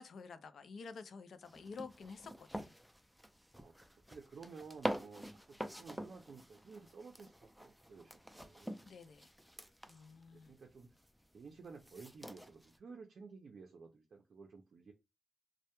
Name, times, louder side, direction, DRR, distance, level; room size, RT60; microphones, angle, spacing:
voice 1, 0.0-2.7 8.8-9.3 9.9-10.5, left 5 dB, 80° left, 0.3 m, -50 dB
sound 1, 1.4-12.8, equal, ahead, 0.3 m, -46 dB
voice 2, 4.1-8.8 10.3-10.9 11.3-14.9, right 4 dB, 70° right, 0.4 m, -54 dB
2.1 x 2.1 x 2.8 m
wide cardioid pair, 95°, 0 cm